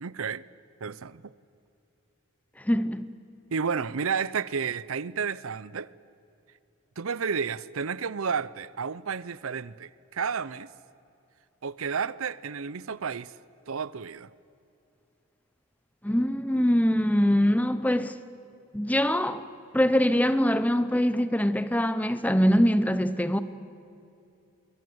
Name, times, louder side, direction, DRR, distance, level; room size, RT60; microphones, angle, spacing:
voice 1, 0.0-0.4 0.8-1.3 3.5-5.9 7.0-10.7 11.6-13.3 13.7-14.3, right 6 dB, 75° right, 0.6 m, -31 dB
voice 2, 2.6-3.1 16.0-18.2 18.7-19.4 19.7-23.4, equal, 5° left, 0.8 m, -23 dB
24.5 x 22.5 x 8.0 m
head